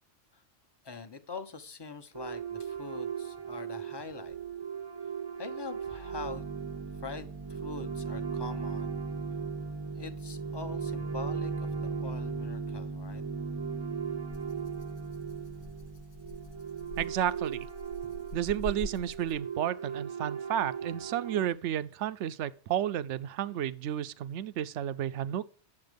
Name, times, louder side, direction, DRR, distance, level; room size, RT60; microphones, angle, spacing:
voice 1, 0.8-4.4 5.4-6.5 7.0-9.0 9.9-13.2, left 4 dB, 25° left, 0.9 m, -44 dB
sound 1, 2.1-21.5, right 5 dB, 30° right, 0.6 m, -37 dB
Rattle (instrument), 14.3-19.6, left 2 dB, 70° left, 1.2 m, -45 dB
voice 2, 17.0-17.7 18.3-25.5, right 10 dB, 75° right, 0.9 m, -32 dB
9.7 x 7.3 x 5.1 m
omnidirectional pair, 1.2 m